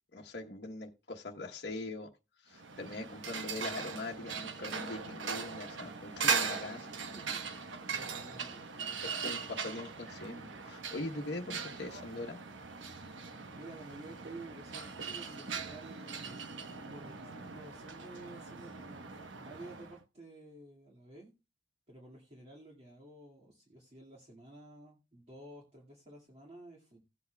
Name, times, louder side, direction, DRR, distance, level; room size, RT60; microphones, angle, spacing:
voice 1, 0.1-2.1 2.4-6.9 9.2-12.4, left 2 dB, 65° left, 1.0 m, -42 dB
sound 1, 2.5-20.0, right 5 dB, 85° right, 1.0 m, -39 dB
voice 2, 7.1-9.1 9.4-9.5 13.5-19.1 19.4-21.3 21.9-27.0, right 2 dB, 35° right, 2.0 m, -52 dB
17.0 x 8.2 x 2.2 m
head